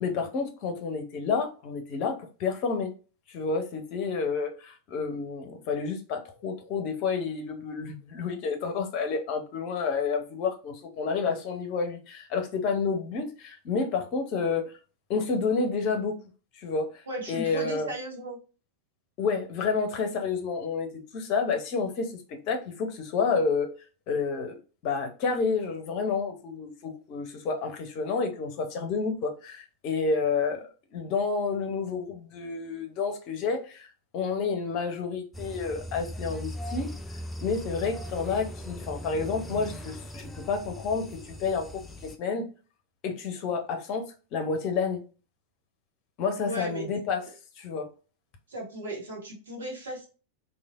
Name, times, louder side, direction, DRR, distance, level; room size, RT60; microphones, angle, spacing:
voice 1, 0.0-2.9 3.3-14.7 15.1-16.1 16.5-17.0 17.3-17.9 19.2-23.7 24.1-24.6 24.8-33.9 34.1-36.9 37.4-42.5 43.0-44.0 44.3-45.0 46.2-47.2 47.6-47.9, left 5 dB, 40° left, 0.7 m, -30 dB
voice 2, 17.1-18.4 46.4-46.9 48.5-50.1, right 1 dB, 65° right, 1.2 m, -36 dB
sound 1, 35.3-42.2, equal, 5° left, 0.4 m, -39 dB
3.2 x 2.5 x 2.4 m
figure-of-eight pair, 90°, 0 cm